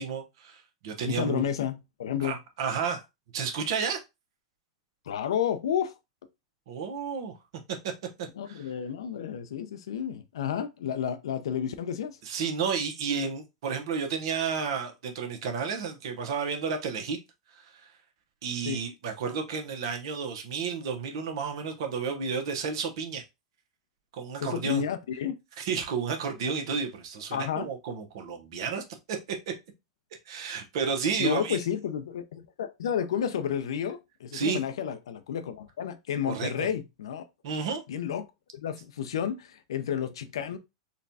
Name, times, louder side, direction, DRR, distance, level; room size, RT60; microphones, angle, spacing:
voice 1, 0.0-1.4 2.2-3.0 3.3-4.0 6.7-7.4 7.8-7.9 8.2-8.6 12.2-17.2 17.5-17.6 18.4-23.2 24.1-24.8 25.6-29.2 30.3-31.6 34.3-34.6 36.3-36.7 37.4-37.8, right 6 dB, 65° right, 0.9 m, -31 dB
voice 2, 1.1-2.4 5.1-5.9 8.4-12.2 18.6-18.8 24.4-25.4 27.3-27.7 31.2-37.2 37.9-38.2 38.5-40.6, left 8 dB, 75° left, 0.5 m, -31 dB
4.0 x 2.3 x 2.6 m
hypercardioid pair, 110°, 3 cm